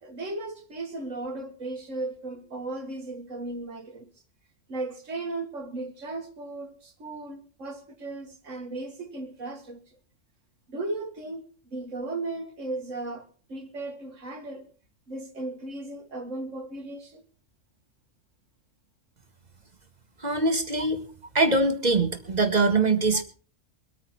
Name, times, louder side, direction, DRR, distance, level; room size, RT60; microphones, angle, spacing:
voice 1, 0.0-4.1 4.7-10.0 10.7-14.7 15.1-17.2 20.8-20.9 23.1-23.2, right 2 dB, 75° right, 2.4 m, -36 dB
voice 2, 20.2-21.0 21.3-23.2, right 3 dB, 35° right, 1.9 m, -23 dB
23.5 x 9.2 x 4.4 m
omnidirectional pair, 1.3 m